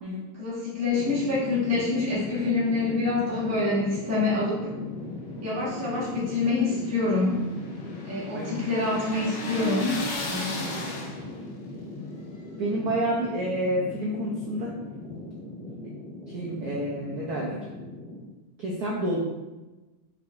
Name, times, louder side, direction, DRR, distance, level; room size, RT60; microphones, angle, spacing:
voice 1, 0.3-4.7 5.4-7.4 8.0-10.0, left 3 dB, 10° right, -8 dB, 0.8 m, -26 dB
sound 1, 0.9-18.2, left 2 dB, 55° left, 1.8 m, -39 dB
sound 2, 6.0-11.5, left 1 dB, 75° left, 1.4 m, -35 dB
voice 2, 10.3-10.9 12.6-14.7 15.1-15.3 16.3-17.6 18.6-19.2, right 1 dB, 70° right, -3 dB, 0.9 m, -29 dB
5.1 x 3.7 x 2.4 m, 1.1 s
omnidirectional pair, 2.3 m